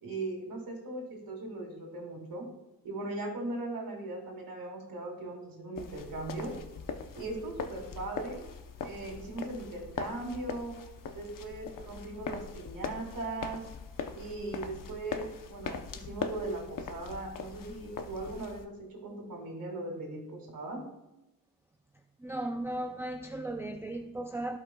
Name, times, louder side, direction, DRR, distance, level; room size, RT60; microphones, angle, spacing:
voice 1, 0.0-2.5 2.8-6.5 7.1-8.4 8.8-10.7 11.1-13.6 14.1-18.8 19.0-20.8, right 2 dB, 65° right, -1 dB, 2.2 m, -39 dB
sound 1, 5.8-18.6, left 6 dB, 60° left, 0.8 m, -41 dB
voice 2, 22.2-24.6, right 1 dB, 5° right, 5 dB, 0.4 m, -36 dB
16.0 x 5.4 x 2.3 m, 0.97 s
cardioid pair, 110°, 36 cm